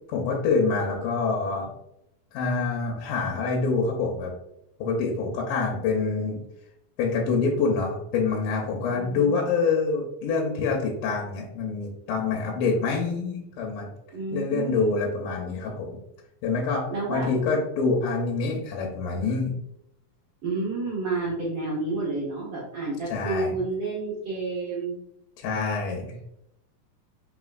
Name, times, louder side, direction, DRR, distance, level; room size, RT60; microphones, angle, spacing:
voice 1, 0.1-1.7 2.3-4.3 4.8-6.4 7.0-13.9 14.3-16.0 16.4-19.5 23.1-23.6 25.4-26.2, left 4 dB, 75° left, -1 dB, 2.1 m, -26 dB
voice 2, 8.9-9.4 14.1-15.0 16.9-17.3 20.4-24.9, right 3 dB, 75° right, -7 dB, 1.4 m, -30 dB
5.0 x 3.5 x 2.4 m, 0.81 s
omnidirectional pair, 4.1 m